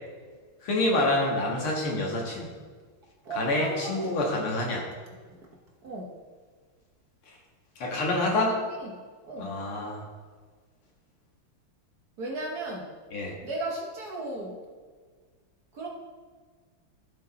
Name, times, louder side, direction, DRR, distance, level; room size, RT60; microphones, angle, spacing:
voice 1, 0.6-2.5 3.3-4.8 7.8-8.5 9.4-10.0 13.1-13.3, left 2 dB, 70° left, -1 dB, 2.5 m, -27 dB
voice 2, 3.2-4.5 5.8-6.2 8.5-8.9 9.2-9.6 12.2-12.9 13.4-14.6 15.7-15.9, right 2 dB, 50° right, -1 dB, 1.5 m, -36 dB
14.5 x 5.2 x 4.1 m, 1.5 s
omnidirectional pair, 2.4 m